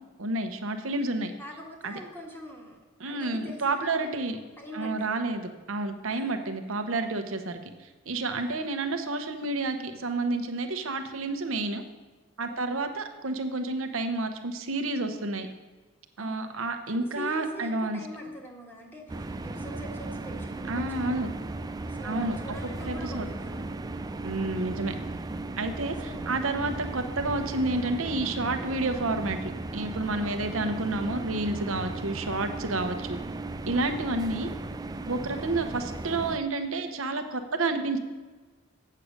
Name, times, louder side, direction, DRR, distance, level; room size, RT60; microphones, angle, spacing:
voice 1, 0.2-1.3 1.8-2.0 3.0-4.4 4.7-7.6 8.1-11.8 12.4-15.5 16.2-18.0 20.7-21.4 22.0-22.4 22.9-23.3 24.2-24.9 25.6-33.2 33.7-34.5 35.0-38.0, right 2 dB, 80° right, 7 dB, 0.9 m, -30 dB
voice 2, 1.4-2.8 3.0-3.9 4.6-5.2 6.1-6.6 8.3-8.7 12.5-12.7 16.2-16.5 16.9-23.8 26.0-26.4 30.2-30.5 33.7-34.1, equal, 10° left, -1 dB, 1.7 m, -44 dB
sound 1, 19.1-36.4, right 2 dB, 20° right, 0.4 m, -36 dB
8.5 x 6.6 x 6.5 m, 1.3 s
head